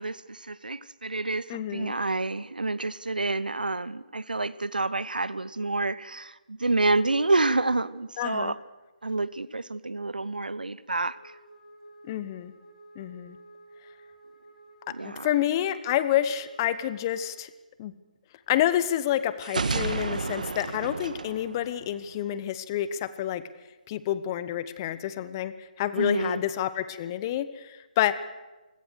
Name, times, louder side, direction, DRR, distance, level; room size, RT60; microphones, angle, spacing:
voice 1, 0.0-8.6 9.0-11.3 14.9-15.3 26.0-26.4, right 2 dB, 85° right, 0.8 m, -28 dB
voice 2, 1.5-1.9 8.2-8.5 12.1-12.5 13.0-13.4 15.0-17.5 17.8-17.9 18.5-23.4 23.9-28.1, left 11 dB, 25° left, 1.0 m, -28 dB
Wind instrument woodwind instrument, 10.9-17.4, right 1 dB, 70° left, 4.4 m, -52 dB
sound 1, 19.4-22.3, right 4 dB, 65° right, 1.6 m, -31 dB
27.0 x 17.0 x 6.5 m
figure-of-eight pair, 150°, 5 cm